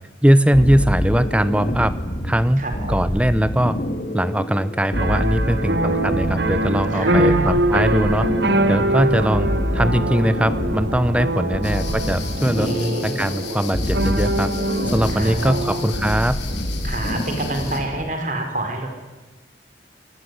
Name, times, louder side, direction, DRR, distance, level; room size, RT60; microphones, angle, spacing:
voice 1, 0.2-1.9 2.2-3.8 4.1-8.3 8.7-9.5 9.7-12.7 13.0-14.5 14.9-16.4, equal, 5° right, 14 dB, 0.8 m, -20 dB
sound 1, 0.5-18.1, equal, 45° left, 2.3 m, -27 dB
voice 2, 2.6-3.0 6.9-7.6 11.4-11.6 12.6-13.2 15.1-15.6 16.8-18.9, right 1 dB, 45° right, 5 dB, 5.2 m, -27 dB
sound 2, 4.9-16.2, right 1 dB, 75° right, 2.1 m, -24 dB
sound 3, 11.6-17.8, left 7 dB, 85° left, 5.0 m, -36 dB
29.0 x 20.0 x 9.8 m, 1.2 s
head